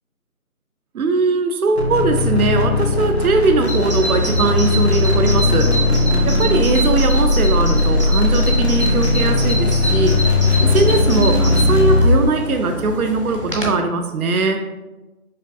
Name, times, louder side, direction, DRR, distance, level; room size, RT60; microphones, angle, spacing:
voice 1, 0.9-5.8 6.2-10.2 10.6-14.7, right 3 dB, 85° right, 7 dB, 0.6 m, -20 dB
sound 1, 1.8-12.2, left 2 dB, 50° left, 0.5 m, -18 dB
Bird vocalization bird call bird song, 3.7-13.8, equal, 40° right, 0.5 m, -26 dB
5.0 x 2.3 x 2.5 m, 1.1 s
figure-of-eight pair, 175°, 42 cm